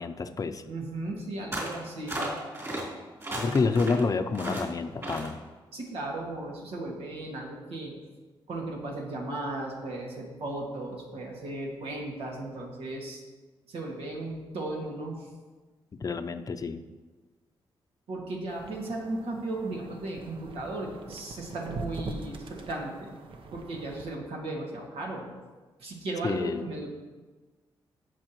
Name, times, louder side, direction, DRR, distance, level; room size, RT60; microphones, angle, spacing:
voice 1, 0.0-0.6 3.3-5.4 15.9-16.8 26.2-26.7, left 4 dB, 40° left, 7 dB, 0.6 m, -29 dB
voice 2, 0.7-2.3 5.7-7.9 8.5-13.2 13.7-15.3 18.1-23.2 23.5-25.3 25.8-26.9, right 2 dB, 85° right, -2 dB, 2.2 m, -36 dB
sound 1, 1.5-1.8 2.1-2.8 3.2-4.0 4.3-4.7 5.0-5.3, right 1 dB, 30° right, 3.5 m, -34 dB
sound 2, 18.5-24.2, right 3 dB, 65° right, 0.9 m, -42 dB
17.0 x 6.1 x 3.1 m, 1.3 s
cardioid pair, 90°, 10 cm